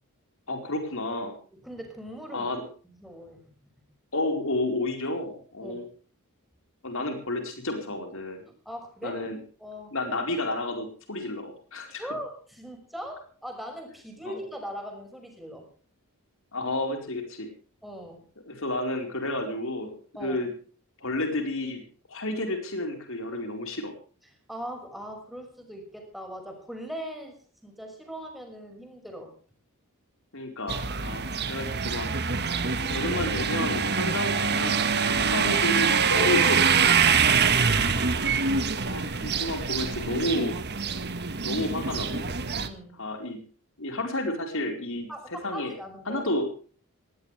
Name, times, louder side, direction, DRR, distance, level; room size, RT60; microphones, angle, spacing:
voice 1, 0.5-1.3 2.3-2.6 4.1-5.9 6.8-8.4 9.0-9.4 9.9-12.0 14.2-14.4 16.5-17.5 18.5-20.5 21.0-23.9 30.3-32.1 32.9-37.3 38.7-40.6 41.4-42.3 43.0-43.4 43.8-45.1 45.4-45.7 46.1-46.5, left 1 dB, 60° left, 4 dB, 4.6 m, -31 dB
voice 2, 1.5-2.5 2.8-3.4 5.6-5.8 8.5-9.2 9.6-9.9 12.0-15.7 17.8-18.3 20.1-20.4 24.5-27.4 27.6-29.3 36.1-36.4 37.4-37.9 42.6-43.0 45.1-46.2, equal, ahead, 3 dB, 5.9 m, -40 dB
sound 1, 30.7-42.7, right 6 dB, 50° right, 1.6 m, -25 dB
19.5 x 18.0 x 3.4 m, 0.40 s
head